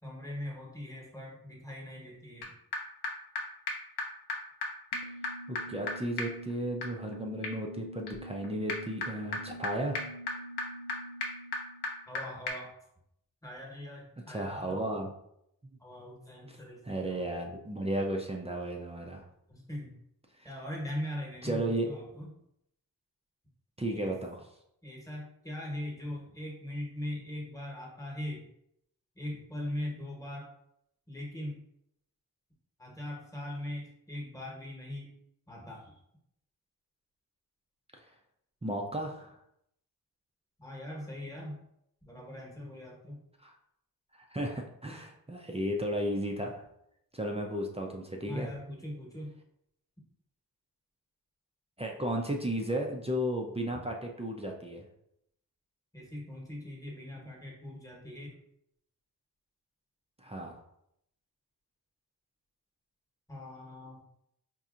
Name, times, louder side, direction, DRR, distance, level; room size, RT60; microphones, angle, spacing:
voice 1, 0.0-2.6 12.1-12.7 13.4-15.0 15.8-17.3 19.5-20.0 20.4-22.3 23.9-24.1 24.8-28.5 29.1-30.5 31.1-31.6 32.8-35.1 35.5-36.0 40.6-41.6 42.0-43.2 48.3-49.4 55.9-58.4 63.3-64.0, left 1 dB, 10° left, -2 dB, 1.2 m, -41 dB
sound 1, 2.4-2.5 2.7-2.8 3.0-3.1 3.4-3.5 3.7-3.8 4.0-4.1 4.3-4.4 4.6-4.7 4.9-12.2 12.5-12.6, left 2 dB, 85° left, 0.7 m, -37 dB
voice 2, 5.5-10.0 14.3-15.1 16.8-19.2 20.4-20.5 21.4-21.9 23.8-24.4 38.6-39.3 43.4-43.5 44.1-46.6 47.1-48.5 51.8-54.8 60.2-60.6, right 1 dB, 15° right, 0 dB, 0.5 m, -34 dB
4.2 x 2.6 x 2.5 m, 0.77 s
cardioid pair, 60°, 38 cm